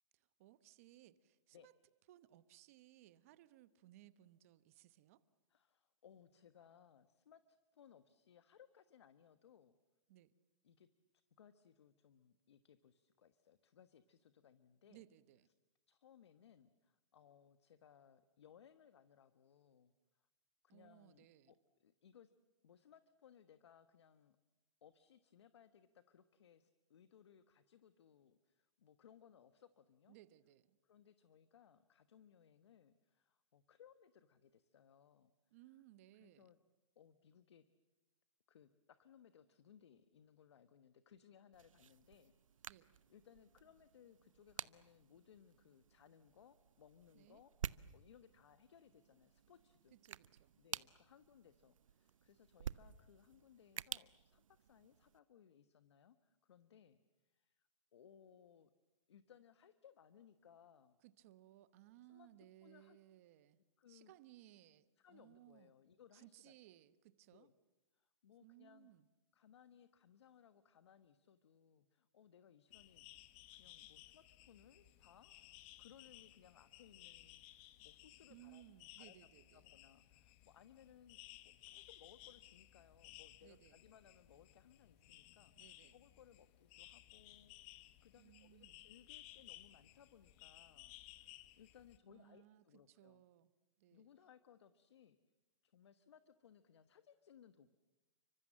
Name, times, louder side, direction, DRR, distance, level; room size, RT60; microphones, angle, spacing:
voice 1, 0.1-1.7 2.1-5.2 10.1-10.3 14.9-15.5 20.7-21.5 30.1-30.8 35.5-36.5 42.7-43.0 47.1-47.4 49.9-51.0 61.0-63.6 63.9-65.7 66.1-67.5 68.4-69.1 78.3-79.6 83.4-83.8 85.6-86.0 88.2-88.8 92.1-93.5 93.8-94.1, right 14 dB, 25° right, 15 dB, 1.0 m, -63 dB
voice 2, 5.5-9.7 10.6-10.9 11.4-15.0 15.9-19.9 20.6-22.3 22.6-24.4 24.8-30.2 30.8-35.6 36.1-36.6 36.9-37.6 38.5-42.7 43.1-50.0 50.6-58.7 59.1-61.0 62.1-62.3 62.6-63.0 63.8-64.1 65.0-66.5 67.3-67.5 67.9-68.9 69.3-73.1 73.5-78.6 79.0-79.2 79.5-81.2 81.4-85.5 85.9-93.2 93.9-95.2 95.6-97.7, left 8 dB, 55° left, 12 dB, 1.3 m, -65 dB
sound 1, 41.5-55.2, right 8 dB, 75° right, 0.9 m, -52 dB
sound 2, 72.7-92.0, left 16 dB, 20° left, 0.9 m, -60 dB
30.0 x 25.5 x 7.5 m, 1.1 s
hypercardioid pair, 170°, 17 cm